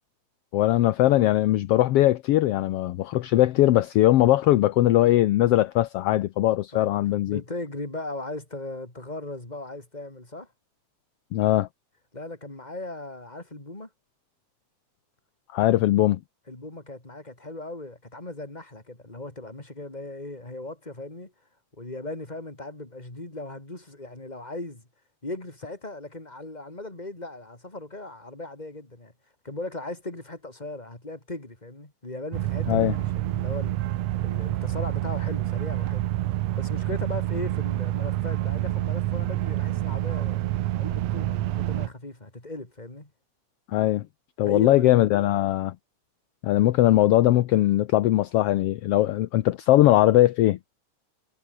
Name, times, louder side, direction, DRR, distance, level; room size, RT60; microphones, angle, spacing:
voice 1, 0.5-7.4 11.3-11.7 15.5-16.2 32.7-33.0 43.7-44.0 44.4-45.7 46.4-50.6, left 15 dB, 70° left, 1.5 m, -20 dB
voice 2, 7.2-10.5 12.1-13.9 16.5-21.3 21.8-24.8 25.2-29.1 29.4-33.8 34.2-36.1 36.5-40.4 40.8-43.1 44.4-45.5, left 2 dB, 15° left, 4.2 m, -38 dB
sound 1, 32.3-41.9, right 15 dB, 70° right, 1.8 m, -27 dB
omnidirectional pair, 3.3 m